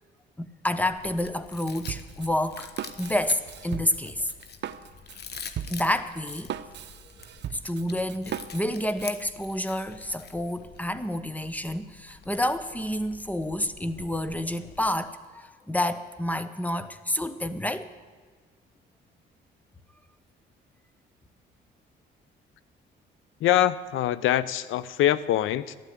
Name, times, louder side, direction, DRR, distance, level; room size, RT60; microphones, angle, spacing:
voice 1, 0.4-2.7 3.0-4.3 5.7-6.5 7.6-17.9, left 1 dB, 10° left, 13 dB, 1.0 m, -29 dB
Chewing mastication, 0.9-15.0, left 6 dB, 55° left, 1.3 m, -46 dB
Drum kit, 1.9-9.2, right 10 dB, 65° right, 0.7 m, -38 dB
voice 2, 23.4-25.8, left 12 dB, 85° left, 17 dB, 0.7 m, -24 dB
13.5 x 11.5 x 9.3 m, 1.4 s
cardioid pair, 90°, 20 cm